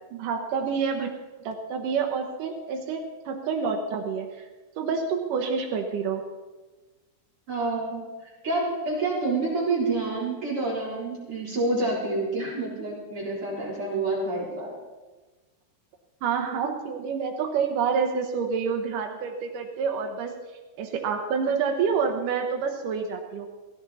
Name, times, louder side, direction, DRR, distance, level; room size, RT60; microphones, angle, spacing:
voice 1, 0.1-1.1 1.4-4.5 4.8-6.2 16.2-20.4 20.8-23.5, right 6 dB, 85° right, 2 dB, 1.8 m, -28 dB
voice 2, 7.5-14.8, right 2 dB, 30° right, -5 dB, 4.2 m, -28 dB
17.0 x 16.5 x 4.2 m, 1.2 s
omnidirectional pair, 5.5 m